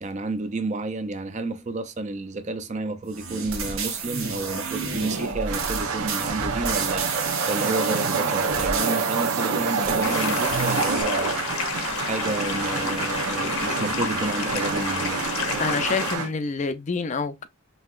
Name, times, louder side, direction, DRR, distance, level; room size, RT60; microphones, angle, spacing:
voice 1, 0.0-15.2, right 2 dB, 30° right, 0.4 m, -31 dB
sound 1, 3.1-11.0, right 5 dB, 70° right, 1.2 m, -31 dB
sound 2, 5.2-16.3, right 5 dB, 85° right, 0.9 m, -27 dB
sound 3, 10.0-16.2, left 5 dB, 75° left, 0.8 m, -30 dB
voice 2, 15.6-17.5, left 4 dB, 30° left, 0.3 m, -27 dB
5.5 x 2.8 x 2.4 m
head